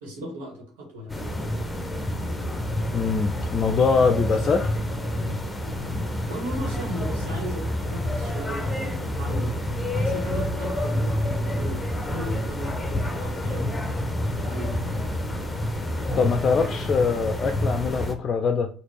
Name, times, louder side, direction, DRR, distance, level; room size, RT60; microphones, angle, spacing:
voice 1, 0.0-1.1 6.3-9.6 9.9-11.8 12.1-13.8 14.2-14.8, right 1 dB, 80° right, 0 dB, 1.7 m, -36 dB
sound 1, 1.1-18.1, left 1 dB, 10° left, 1.0 m, -28 dB
voice 2, 2.9-4.7 16.2-18.7, left 5 dB, 45° left, 7 dB, 0.5 m, -23 dB
4.1 x 2.8 x 4.6 m, 0.42 s
hypercardioid pair, 60°, 0 cm